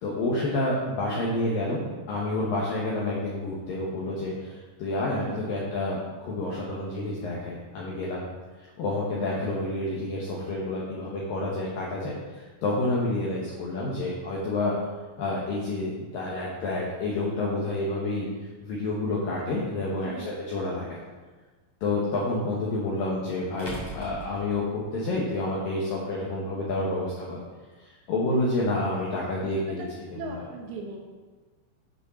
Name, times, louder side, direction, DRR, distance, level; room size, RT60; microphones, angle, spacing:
voice 1, 0.0-8.3 8.8-14.7 15.2-18.3 18.6-20.9 21.8-27.4 27.8-29.8, left 2 dB, 85° left, -5 dB, 2.0 m, -29 dB
voice 2, 1.1-1.6 5.2-5.5 20.0-20.3 29.2-29.9 30.1-31.1, right 3 dB, 75° right, 1 dB, 2.8 m, -39 dB
sound 1, 19.8-19.9 22.4-22.5 23.6-25.2, right 1 dB, 20° left, 0.6 m, -40 dB
9.5 x 5.5 x 6.2 m, 1.3 s
omnidirectional pair, 5.9 m